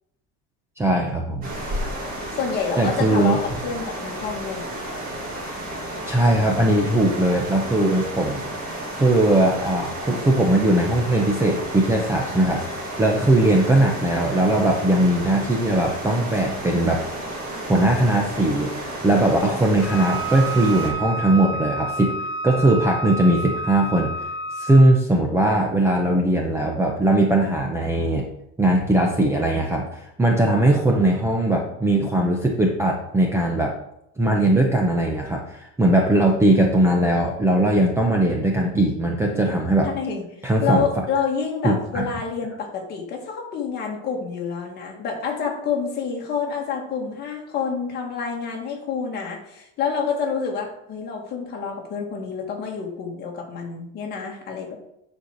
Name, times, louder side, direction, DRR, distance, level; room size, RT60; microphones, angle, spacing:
voice 1, 0.8-1.5 2.8-3.4 6.1-8.4 8.9-12.6 13.0-17.0 17.7-18.7 19.0-22.1 22.4-24.1 24.6-28.2 28.6-33.8 34.2-39.9 40.4-40.9 41.6-42.1, right 1 dB, 10° right, 0 dB, 0.7 m, -19 dB
sound 1, 1.4-20.9, right 1 dB, 30° right, 2.1 m, -32 dB
voice 2, 2.3-4.7 39.8-54.8, left 6 dB, 35° left, 0 dB, 2.0 m, -28 dB
Wind instrument woodwind instrument, 19.8-25.0, right 2 dB, 55° left, 1.3 m, -30 dB
9.7 x 4.4 x 6.4 m, 0.79 s
cardioid pair, 180°, 30 cm